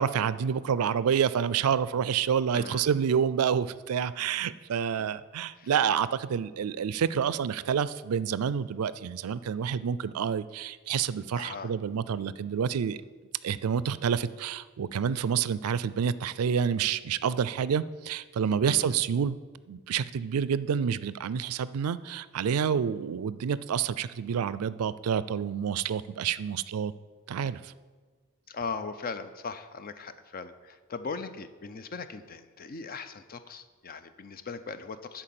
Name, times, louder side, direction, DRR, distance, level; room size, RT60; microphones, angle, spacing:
voice 1, 0.0-13.0 13.4-19.4 19.7-26.9 27.3-27.7, right 7 dB, 90° right, 17 dB, 0.4 m, -28 dB
voice 2, 2.5-2.9 5.0-5.2 5.6-5.7 11.3-11.7 18.6-19.0 28.5-35.2, left 4 dB, 45° left, 11 dB, 0.6 m, -39 dB
11.0 x 4.5 x 7.6 m, 1.4 s
head